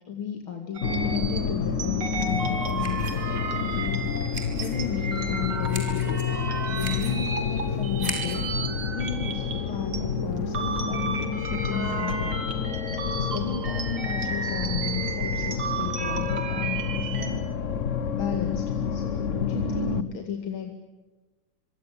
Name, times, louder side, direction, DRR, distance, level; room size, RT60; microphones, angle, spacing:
voice 1, 0.1-4.1 4.6-12.7 13.1-17.4 18.1-20.7, left 7 dB, 70° left, 4 dB, 3.0 m, -34 dB
sound 1, 0.7-10.0 10.4-17.3, right 4 dB, 75° right, 3.7 m, -33 dB
sound 2, 0.8-20.0, left 6 dB, 45° left, 1.1 m, -29 dB
sound 3, 2.1-8.5, right 1 dB, 20° right, 5.5 m, -41 dB
26.0 x 24.0 x 8.3 m, 1.2 s
omnidirectional pair, 2.3 m